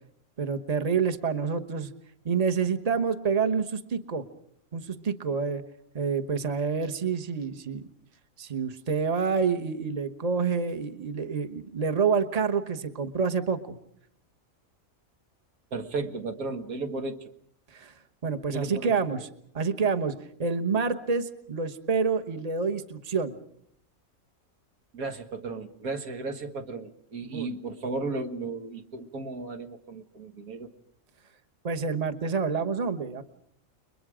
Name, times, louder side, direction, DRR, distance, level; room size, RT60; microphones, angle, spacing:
voice 1, 0.4-1.9 2.2-4.2 4.7-5.6 5.9-7.8 8.4-13.8 17.7-17.9 18.2-19.2 19.5-20.1 20.4-23.3 27.2-27.5 31.6-33.2, right 5 dB, 30° right, 8 dB, 1.2 m, -28 dB
voice 2, 15.7-17.3 18.5-19.0 24.9-30.7, right 3 dB, 85° right, 6 dB, 2.0 m, -35 dB
30.0 x 22.5 x 5.0 m, 0.69 s
omnidirectional pair, 1.4 m